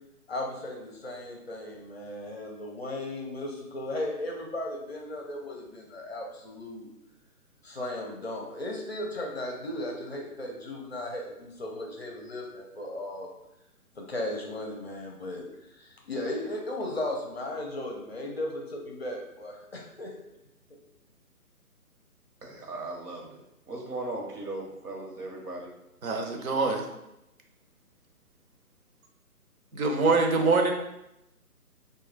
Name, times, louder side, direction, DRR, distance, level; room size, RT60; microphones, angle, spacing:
voice 1, 0.3-6.9 7.6-13.3 14.0-20.1, left 1 dB, 45° left, 0 dB, 0.5 m, -36 dB
voice 2, 22.4-23.4 23.7-25.7, right 2 dB, 80° right, 1 dB, 1.0 m, -37 dB
voice 3, 26.0-26.9 29.7-30.7, right 3 dB, 65° right, 3 dB, 0.7 m, -24 dB
3.1 x 2.2 x 3.2 m, 0.88 s
figure-of-eight pair, 145°, 47 cm